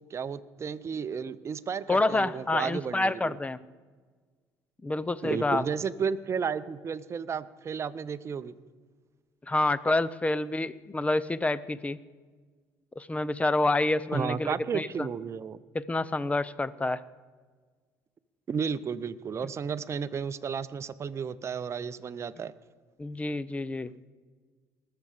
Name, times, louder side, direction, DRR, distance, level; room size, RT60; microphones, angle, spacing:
voice 1, 0.1-3.4 5.2-8.6 14.1-15.6 18.5-22.5, right 6 dB, 40° right, 13 dB, 0.6 m, -33 dB
voice 2, 1.9-3.6 4.8-5.6 9.5-12.0 13.0-15.1 15.7-17.0 23.0-23.9, left 2 dB, 20° left, 17 dB, 0.6 m, -28 dB
20.0 x 6.8 x 4.9 m, 1.5 s
supercardioid pair, 70°, 8 cm